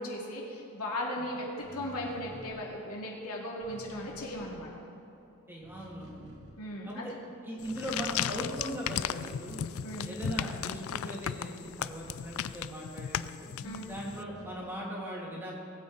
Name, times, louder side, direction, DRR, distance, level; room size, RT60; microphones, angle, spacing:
voice 1, 0.0-4.7 6.6-7.2 9.8-10.1 13.6-13.9, left 1 dB, 90° left, -2 dB, 2.4 m, -37 dB
sound 1, 1.5-5.2 5.4-7.2 7.5-13.1 13.6-14.8, equal, 50° right, 2.5 m, -52 dB
voice 2, 5.5-6.3 6.8-7.1 7.4-9.7 10.0-15.5, equal, 10° right, -4 dB, 2.5 m, -39 dB
sound 2, 7.6-14.2, left 9 dB, 65° left, 0.4 m, -36 dB
20.5 x 8.6 x 3.9 m, 2.9 s
head